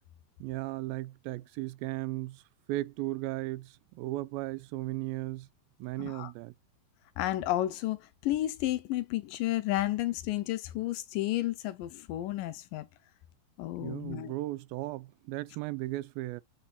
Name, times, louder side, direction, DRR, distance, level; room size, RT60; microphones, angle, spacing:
voice 1, 0.4-2.4 2.7-5.5 5.8-6.5 13.8-16.4, right 18 dB, 85° right, 2.4 m, -36 dB
voice 2, 6.0-6.3 7.2-12.9 13.6-14.3, left 15 dB, 75° left, 2.2 m, -32 dB
9.9 x 4.1 x 2.5 m
omnidirectional pair, 4.2 m